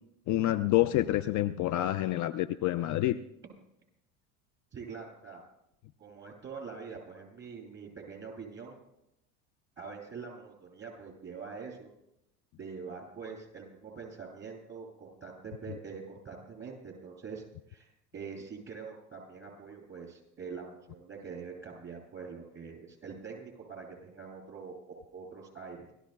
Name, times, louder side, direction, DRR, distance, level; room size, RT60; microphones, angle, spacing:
voice 1, 0.3-3.2, left 14 dB, 45° left, 15 dB, 0.5 m, -27 dB
voice 2, 4.7-5.4 6.0-8.8 9.8-11.9 12.6-25.9, right 5 dB, 25° right, -2 dB, 7.7 m, -44 dB
29.0 x 14.5 x 2.3 m, 0.81 s
hypercardioid pair, 85°, 43 cm